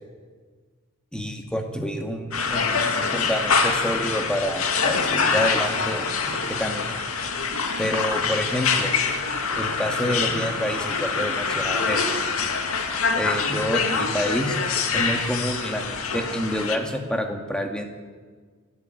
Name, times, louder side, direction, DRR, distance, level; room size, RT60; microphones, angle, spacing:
voice 1, 1.1-7.0 7.8-8.9 9.5-12.0 13.1-14.6 14.9-17.8, equal, 5° left, 3 dB, 2.3 m, -28 dB
sound 1, 2.3-16.8, left 5 dB, 70° left, 2.4 m, -25 dB
28.0 x 13.0 x 9.4 m, 1.5 s
head